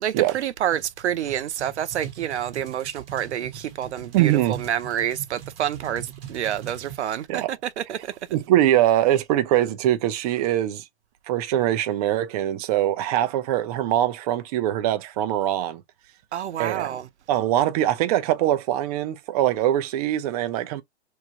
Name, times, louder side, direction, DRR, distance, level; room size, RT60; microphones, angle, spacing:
voice 1, 0.0-8.1 16.3-17.1, right 10 dB, 75° right, 0.6 m, -28 dB
sound 1, 0.7-7.0, right 9 dB, 55° right, 1.1 m, -41 dB
voice 2, 4.1-4.6 7.3-7.5 8.3-10.8 11.3-15.8 16.6-16.9 17.3-20.8, right 12 dB, 35° right, 0.6 m, -22 dB
3.1 x 2.2 x 3.7 m
hypercardioid pair, 125°, 35 cm